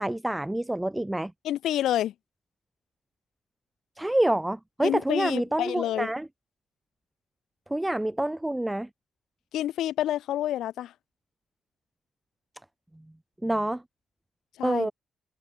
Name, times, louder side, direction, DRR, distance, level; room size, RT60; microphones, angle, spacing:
voice 1, 0.0-1.3 4.0-6.3 7.7-8.9 13.4-13.8 14.6-14.9, right 1 dB, 10° right, 0.4 m, -27 dB
voice 2, 1.4-2.1 4.8-6.1 9.5-10.9 14.6-14.9, left 12 dB, 80° left, 2.5 m, -28 dB
cardioid pair, 90°, 0 cm